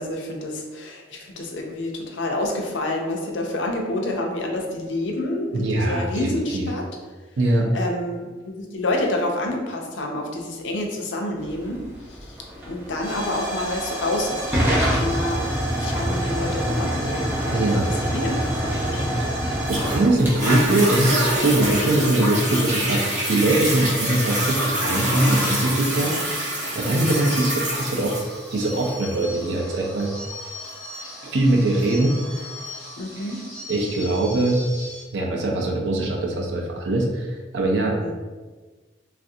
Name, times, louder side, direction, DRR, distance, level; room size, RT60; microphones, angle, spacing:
voice 1, 0.0-6.8 7.7-11.8 12.1-12.4 12.7-15.5 15.8-19.2 20.2-20.3 26.8-27.3 33.0-33.4 38.0-38.1, left 1 dB, 80° left, 1 dB, 0.5 m, -28 dB
voice 2, 5.5-6.7 7.4-7.7 17.5-17.9 19.4-23.0 23.3-26.3 26.6-28.2 28.5-30.1 31.2-32.2 33.2-33.3 33.7-34.6 35.1-38.1, right 2 dB, 75° right, 0 dB, 0.5 m, -22 dB
Hiss / Fire / Tick, 11.4-21.8, equal, 10° right, 0.5 m, -26 dB
Toilet flush, 19.7-32.7 33.3-33.4, equal, 40° right, 1.2 m, -26 dB
sound 1, 25.4-35.0, left 2 dB, 35° left, 0.9 m, -40 dB
3.2 x 2.5 x 2.6 m, 1.3 s
head